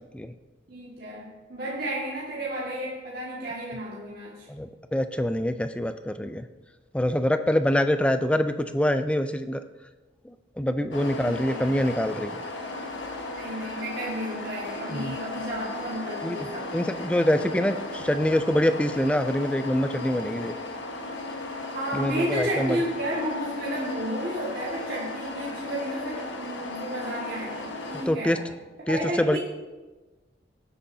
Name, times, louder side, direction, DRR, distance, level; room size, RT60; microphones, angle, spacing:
voice 1, 0.7-4.5 11.2-11.7 13.3-16.7 21.7-28.4 28.9-29.4, right 1 dB, 55° right, -6 dB, 1.9 m, -32 dB
voice 2, 4.5-6.5 6.9-9.6 10.2-12.4 14.9-15.1 16.2-16.4 16.7-20.5 21.9-22.8 28.1-28.4 28.9-29.4, left 1 dB, 5° left, 9 dB, 0.4 m, -25 dB
sound 1, 10.9-28.1, left 2 dB, 85° left, 1.3 m, -36 dB
16.0 x 8.5 x 2.7 m, 1.2 s
head